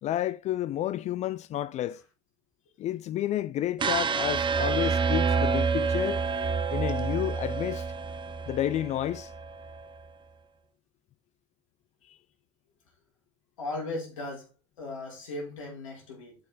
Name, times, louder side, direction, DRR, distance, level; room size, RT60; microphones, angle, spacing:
voice 1, 0.0-2.0 2.8-6.2 6.7-7.8 8.5-9.3 12.1-12.2, left 12 dB, 45° left, 0.4 m, -30 dB
sound 1, 3.8-9.9, right 5 dB, 30° right, 0.9 m, -28 dB
voice 2, 13.6-14.5 14.8-16.4, left 2 dB, 90° left, 4.0 m, -37 dB
7.8 x 5.5 x 4.0 m
hypercardioid pair, 80°, 17 cm